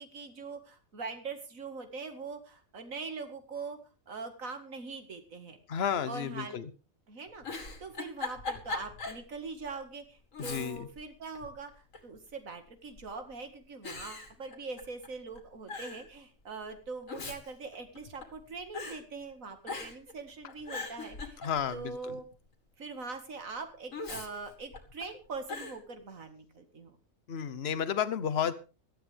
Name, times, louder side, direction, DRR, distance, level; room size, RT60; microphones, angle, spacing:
voice 1, 0.0-3.8 4.1-5.6 6.1-6.6 7.1-21.4 21.7-22.3 22.8-27.0, right 4 dB, 75° right, 7 dB, 2.4 m, -42 dB
voice 2, 5.7-6.7 10.4-10.9 21.4-22.2 27.3-28.5, left 8 dB, 50° left, 13 dB, 1.2 m, -32 dB
Giggle, 7.3-9.3 9.7-9.8 10.3-11.0 11.4-12.2 12.9-13.3 13.8-15.1 15.3-15.4 15.7-16.1 16.9-18.4 18.7-19.0 19.6-20.1 20.5-21.9 23.9-25.0 25.5-25.8, left 3 dB, 70° left, 2.4 m, -40 dB
17.5 x 12.5 x 3.5 m, 0.33 s
omnidirectional pair, 1.4 m